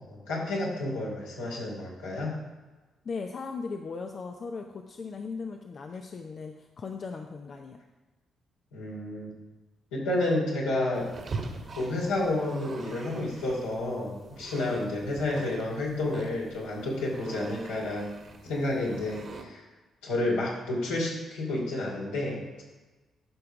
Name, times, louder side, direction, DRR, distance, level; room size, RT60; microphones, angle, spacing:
voice 1, 0.0-2.3 8.7-9.3 9.9-11.1 11.7-18.1 18.4-19.6 20.0-22.6, left 2 dB, 80° left, -5 dB, 2.9 m, -30 dB
voice 2, 3.0-7.8, left 4 dB, 50° left, 4 dB, 0.7 m, -38 dB
sound 1, 10.9-19.4, right 3 dB, 50° right, 1.6 m, -43 dB
13.5 x 5.8 x 4.9 m, 1.2 s
hypercardioid pair, 40°, 0 cm